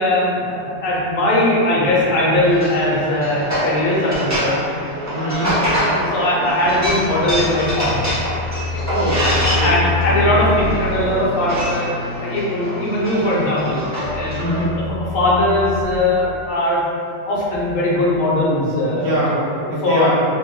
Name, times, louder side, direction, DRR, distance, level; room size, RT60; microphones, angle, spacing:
voice 1, 0.0-4.6 5.1-5.5 5.8-8.0 9.2-11.9 12.2-13.8 14.1-14.4 14.8-16.8 17.3-19.1 19.5-20.1, left 1 dB, 75° left, -6 dB, 1.4 m, -19 dB
sound 1, 2.5-14.6, equal, 20° right, 0.4 m, -25 dB
voice 2, 5.1-5.6 8.9-9.2 9.5-9.7 10.1-10.3 14.3-14.7 18.9-20.2, right 1 dB, 60° right, -7 dB, 0.8 m, -22 dB
sound 2, 6.4-15.8, left 4 dB, 50° left, 0.8 m, -28 dB
3.3 x 2.1 x 3.6 m, 2.5 s
omnidirectional pair, 2.0 m